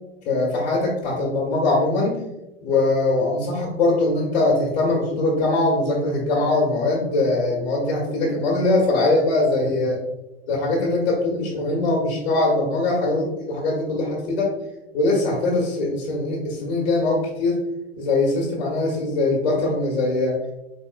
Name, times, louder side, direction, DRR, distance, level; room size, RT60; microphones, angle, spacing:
voice 1, 0.2-2.2 2.6-10.0 10.5-14.5 14.9-17.6 18.0-20.4, left 2 dB, 60° left, -3 dB, 1.3 m, -22 dB
4.1 x 3.6 x 2.4 m, 0.93 s
figure-of-eight pair, 85°, 31 cm